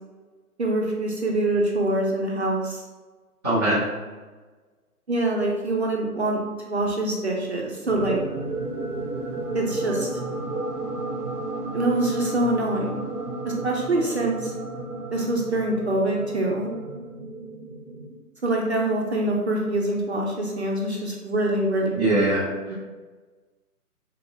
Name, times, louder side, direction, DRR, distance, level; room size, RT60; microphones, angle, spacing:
voice 1, 0.6-2.8 5.1-6.4 6.7-8.2 9.5-10.1 11.7-13.0 13.4-14.5 15.1-16.7 18.4-21.9 22.7-22.8, right 1 dB, 45° right, -1 dB, 0.5 m, -25 dB
voice 2, 3.4-3.8 22.0-22.4 22.7-22.8, right 1 dB, 10° left, -14 dB, 0.6 m, -21 dB
sound 1, 7.9-18.2, right 2 dB, 85° right, 0.7 m, -32 dB
3.6 x 2.7 x 2.5 m, 1.3 s
figure-of-eight pair, 150°, 46 cm